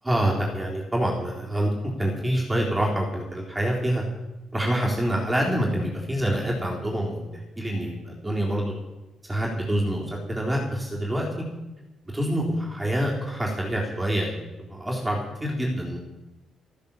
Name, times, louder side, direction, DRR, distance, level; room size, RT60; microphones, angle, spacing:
voice 1, 0.0-4.0 4.5-8.7 9.3-11.3 12.1-16.0, right 1 dB, 10° right, -2 dB, 3.8 m, -26 dB
13.5 x 10.5 x 7.3 m, 1.0 s
cardioid pair, 90°, 0 cm